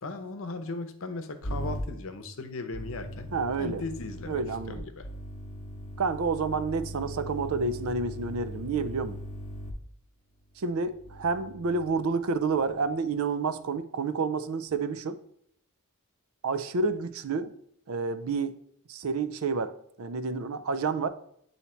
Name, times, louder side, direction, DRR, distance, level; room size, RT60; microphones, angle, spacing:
voice 1, 0.0-4.4 4.7-5.1, left 3 dB, 65° left, 8 dB, 0.7 m, -37 dB
sound 1, 1.4-1.8 2.7-9.7 10.8-11.9 12.5-12.9, equal, 35° left, 0.9 m, -39 dB
voice 2, 3.3-3.8 4.3-4.8 6.0-9.2 10.6-15.2 16.4-17.5 17.9-18.6 18.9-19.7 20.0-21.1, right 4 dB, 70° right, 11 dB, 0.5 m, -29 dB
8.2 x 2.8 x 4.3 m, 0.68 s
head